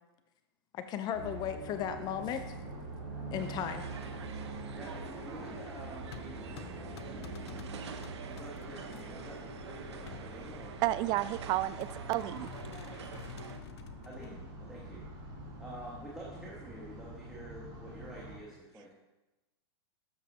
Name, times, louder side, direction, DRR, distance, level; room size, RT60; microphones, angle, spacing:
voice 1, 0.7-2.6 3.3-3.8, left 9 dB, 30° left, 9 dB, 0.6 m, -35 dB
sound 1, 1.1-18.4, right 2 dB, 50° right, 3.4 m, -45 dB
sound 2, 3.4-13.6, right 7 dB, 80° right, 1.0 m, -48 dB
voice 2, 4.7-7.6 8.3-10.7 14.0-15.0 15.6-18.9, right 1 dB, 5° right, -6 dB, 1.6 m, -48 dB
sound 3, 5.9-9.1 9.8-10.9 11.8-14.4, left 8 dB, 70° left, 0.7 m, -50 dB
voice 3, 10.8-12.5, right 15 dB, 30° right, 16 dB, 0.4 m, -31 dB
12.5 x 7.3 x 2.8 m, 1.0 s
hypercardioid pair, 135°, 14 cm